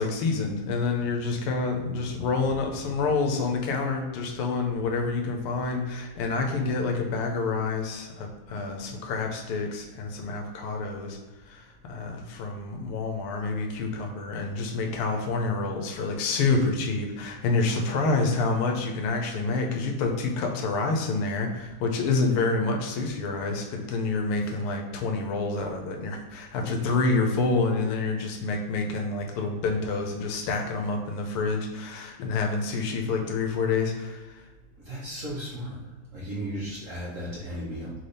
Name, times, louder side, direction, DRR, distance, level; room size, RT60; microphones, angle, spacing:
voice 1, 0.0-11.2 11.5-34.4, left 3 dB, 85° left, 2 dB, 1.6 m, -28 dB
voice 2, 34.9-35.8 36.1-37.9, right 1 dB, 50° right, -7 dB, 1.0 m, -35 dB
3.9 x 3.3 x 4.0 m, 1.2 s
omnidirectional pair, 2.4 m